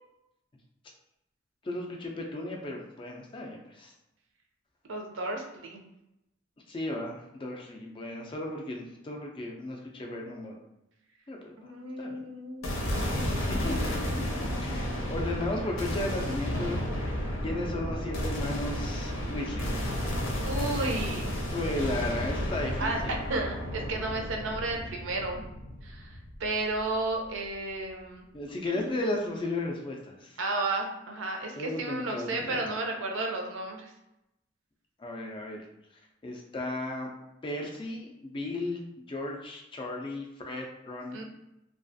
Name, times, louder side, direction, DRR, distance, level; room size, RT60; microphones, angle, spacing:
voice 1, 1.6-3.9 6.7-10.5 11.3-11.5 12.0-12.1 13.6-14.0 14.6-19.7 21.5-23.2 28.3-30.4 31.6-32.7 35.0-35.6 36.2-37.1 37.4-41.2, left 2 dB, 25° left, 0 dB, 0.3 m, -35 dB
voice 2, 4.9-5.8 11.6-15.0 20.4-21.3 22.8-25.4 25.8-28.2 28.7-28.9 30.4-33.9 41.1-41.2, right 2 dB, 75° right, 2 dB, 0.5 m, -33 dB
sound 1, 12.6-26.9, equal, 85° left, 0.7 m, -32 dB
2.4 x 2.3 x 2.5 m, 0.89 s
head